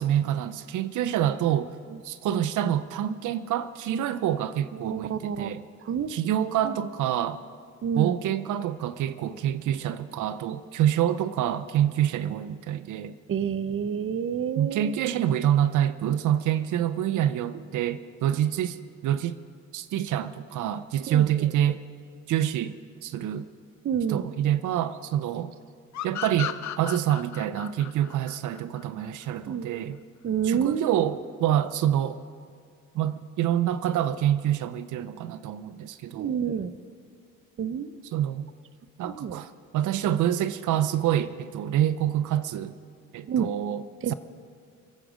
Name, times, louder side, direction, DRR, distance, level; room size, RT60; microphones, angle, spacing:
voice 1, 0.0-1.7 2.0-5.6 6.1-7.4 8.0-13.2 14.6-18.8 19.0-19.4 19.7-21.8 22.3-22.7 23.0-23.5 24.1-25.5 26.0-30.0 30.4-32.2 32.9-36.3 38.1-38.5 39.0-42.7 43.1-43.8, right 11 dB, 80° right, 14 dB, 0.7 m, -26 dB
voice 2, 4.7-6.1 6.6-6.8 7.8-8.2 13.3-14.9 21.1-21.5 23.8-24.3 29.5-29.8 30.2-31.0 36.1-36.7 37.6-38.0 39.0-39.4 43.3-43.5 44.0-44.1, right 7 dB, 45° right, 14 dB, 0.7 m, -29 dB
sound 1, 25.9-29.3, left 11 dB, 65° left, 0.9 m, -35 dB
27.0 x 9.2 x 5.1 m, 2.2 s
cardioid pair, 90°, 30 cm